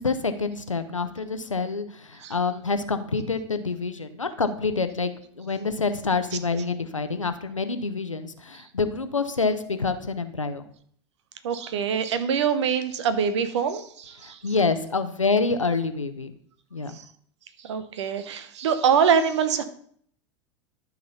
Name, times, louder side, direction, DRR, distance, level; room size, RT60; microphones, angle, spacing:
voice 1, 0.0-5.1 5.4-10.7 14.2-16.3 16.7-16.9, left 4 dB, 90° left, 10 dB, 0.8 m, -27 dB
voice 2, 11.4-14.4 16.9-17.0 17.6-19.6, right 7 dB, 65° right, 11 dB, 1.0 m, -24 dB
12.0 x 4.1 x 5.5 m, 0.62 s
figure-of-eight pair, 85°, 16 cm